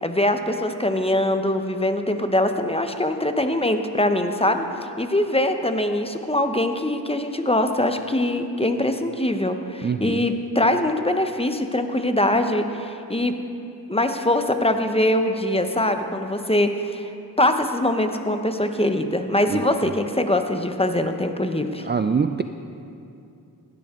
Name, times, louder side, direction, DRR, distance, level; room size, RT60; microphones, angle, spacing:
voice 1, 0.0-13.4 13.9-21.9, left 1 dB, 15° left, 7 dB, 0.9 m, -23 dB
voice 2, 9.8-10.2 19.5-19.6 21.8-22.4, right 5 dB, 25° right, 8 dB, 0.4 m, -24 dB
16.0 x 12.0 x 3.7 m, 2.6 s
cardioid pair, 50°, 42 cm